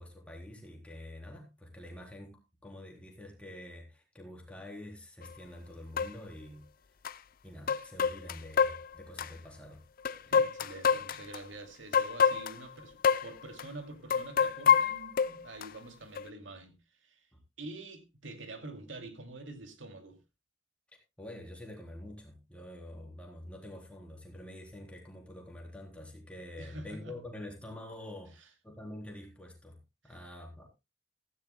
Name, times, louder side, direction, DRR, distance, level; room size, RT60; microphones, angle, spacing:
voice 1, 0.0-6.7 7.4-9.8 17.3-17.4 21.2-29.8 30.0-30.6, left 1 dB, 5° left, 3.7 m, -47 dB
sound 1, 5.2-5.3 6.0-6.1 7.0-7.1 7.7-9.3 10.0-11.4 11.9-12.6 13.0-13.3 13.6-13.7 14.1-15.7 16.2-16.3, left 6 dB, 50° left, 0.5 m, -27 dB
voice 2, 10.2-17.3 17.6-20.2 26.6-27.1 30.1-30.2, right 2 dB, 80° right, 2.5 m, -46 dB
16.0 x 14.5 x 2.2 m
head